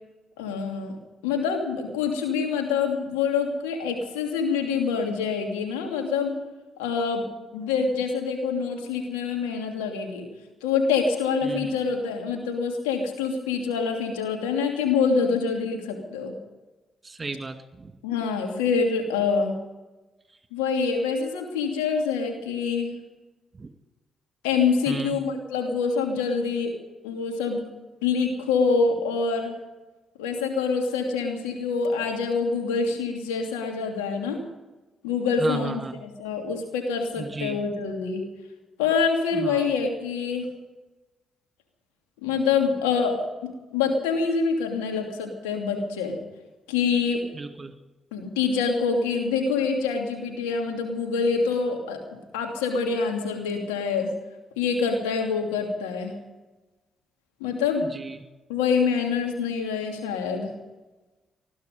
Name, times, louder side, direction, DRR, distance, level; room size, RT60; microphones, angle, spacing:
voice 1, 0.4-1.0 1.2-6.3 6.8-7.2 7.5-10.3 10.6-16.3 18.0-19.6 20.5-22.9 24.4-26.7 27.0-27.6 28.0-29.5 30.2-34.4 35.0-38.2 38.8-40.5 42.2-43.1 43.4-46.2 46.7-47.2 48.1-52.0 52.3-54.1 54.6-56.1 57.4-57.8 58.5-60.5, left 5 dB, 85° left, 2 dB, 2.8 m, -26 dB
voice 2, 11.4-11.8 17.0-17.9 23.6-23.7 24.9-25.2 35.4-36.0 37.2-37.6 39.3-39.7 47.3-47.7 57.9-58.2, right 3 dB, 35° right, 6 dB, 2.4 m, -34 dB
20.5 x 13.0 x 5.4 m, 1.1 s
hypercardioid pair, 45°, 0 cm